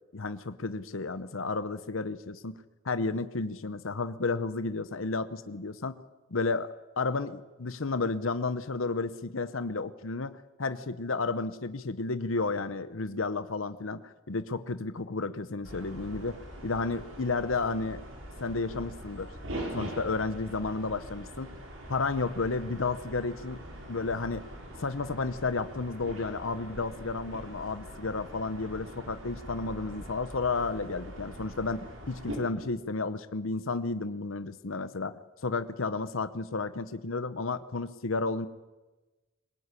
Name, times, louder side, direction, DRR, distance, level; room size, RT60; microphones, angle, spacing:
voice 1, 0.1-2.5 2.8-6.0 6.3-6.7 7.0-18.0 18.4-19.3 19.7-21.5 21.9-24.5 24.8-38.5, left 3 dB, 75° left, 13 dB, 0.9 m, -32 dB
sound 1, 15.6-32.4, right 1 dB, 80° right, 6.0 m, -43 dB
22.5 x 20.5 x 9.8 m, 1.2 s
head